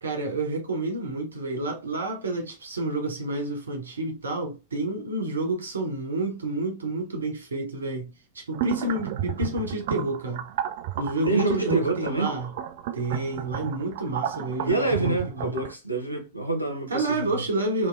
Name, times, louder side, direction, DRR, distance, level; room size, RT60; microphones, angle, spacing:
voice 1, 0.0-10.5 11.0-12.5 12.9-15.5 16.9-17.9, right 2 dB, 70° right, 0.9 m, -29 dB
sound 1, 8.5-15.7, right 10 dB, 50° right, 0.4 m, -33 dB
voice 2, 11.3-12.3 14.7-17.4, right 2 dB, 90° left, 0.7 m, -27 dB
3.0 x 3.0 x 2.5 m
figure-of-eight pair, 90°, 0 cm